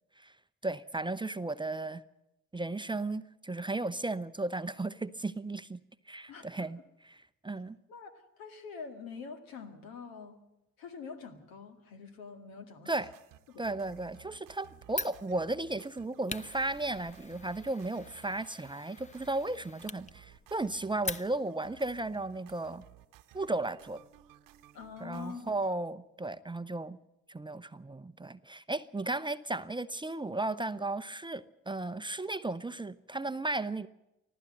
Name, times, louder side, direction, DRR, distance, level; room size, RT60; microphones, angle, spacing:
voice 1, 0.6-2.0 2.5-5.8 6.1-7.8 12.9-13.1 13.6-22.8 23.3-24.0 25.0-27.0 27.3-33.9, right 2 dB, 15° right, 0.7 m, -35 dB
voice 2, 6.3-6.7 7.9-10.4 10.8-12.9 13.5-13.6 24.7-25.5, left 5 dB, 70° left, 2.1 m, -45 dB
sound 1, 13.0-25.7, right 13 dB, 65° right, 1.1 m, -57 dB
Fire, 14.9-21.7, left 3 dB, 20° left, 0.8 m, -44 dB
24.5 x 15.0 x 7.7 m
figure-of-eight pair, 40°, 36 cm